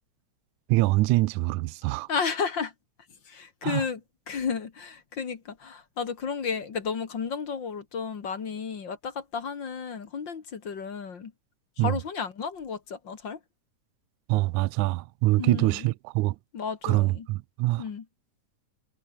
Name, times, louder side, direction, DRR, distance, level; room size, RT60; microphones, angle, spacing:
voice 1, 0.7-2.1 3.6-3.8 11.8-11.9 14.3-16.4 16.8-17.8, right 19 dB, 80° right, 2.0 m, -24 dB
voice 2, 2.1-2.7 3.3-11.3 11.8-13.4 15.4-15.9 16.5-17.3 17.8-18.1, left 6 dB, 40° left, 2.1 m, -33 dB
omnidirectional pair, 3.6 m